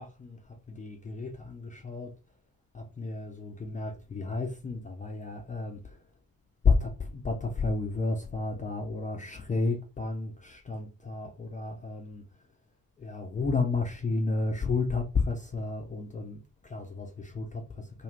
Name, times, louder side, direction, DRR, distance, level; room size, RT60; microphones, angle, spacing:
voice 1, 0.0-2.2 2.7-6.1 6.6-12.5 13.0-18.0, left 4 dB, 15° left, 0.4 m, -32 dB
2.5 x 2.4 x 3.1 m
figure-of-eight pair, 45°, 49 cm